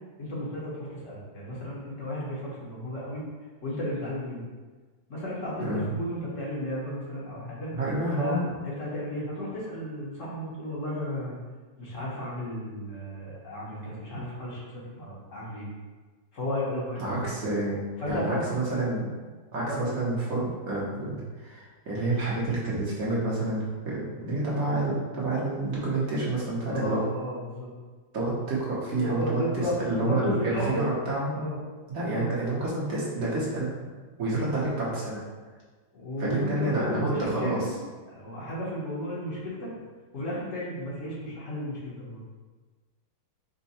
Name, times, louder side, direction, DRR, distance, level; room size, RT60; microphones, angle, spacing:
voice 1, 0.2-3.2 3.6-4.4 5.1-7.7 8.2-11.4 11.8-15.7 16.3-17.4 18.0-18.6 19.6-19.9 26.7-27.7 29.0-30.9 31.4-31.6 32.0-32.3 35.9-37.7 38.1-39.7 40.1-42.2, left 1 dB, 45° left, -6 dB, 1.2 m, -34 dB
voice 2, 5.6-5.9 7.7-8.4 17.0-17.8 18.1-19.1 19.5-27.0 28.1-31.4 31.9-33.7 34.2-35.2 36.2-37.6, right 2 dB, 50° right, -7 dB, 1.2 m, -29 dB
5.4 x 2.2 x 4.1 m, 1.4 s
omnidirectional pair, 2.2 m